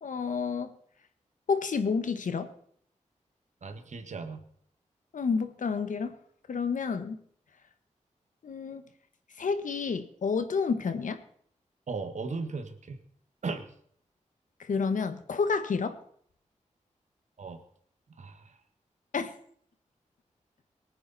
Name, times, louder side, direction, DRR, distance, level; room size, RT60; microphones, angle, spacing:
voice 1, 0.0-0.7 1.5-2.5 5.1-6.1 6.5-7.2 8.4-8.8 9.4-11.2 14.6-16.0 19.1-19.3, left 5 dB, 85° left, 9 dB, 1.5 m, -29 dB
voice 2, 3.6-4.4 11.9-13.0 13.4-13.7 17.4-17.6 18.2-18.4, right 4 dB, 65° right, 7 dB, 1.7 m, -36 dB
23.0 x 9.7 x 4.3 m, 0.63 s
wide cardioid pair, 125°, 13 cm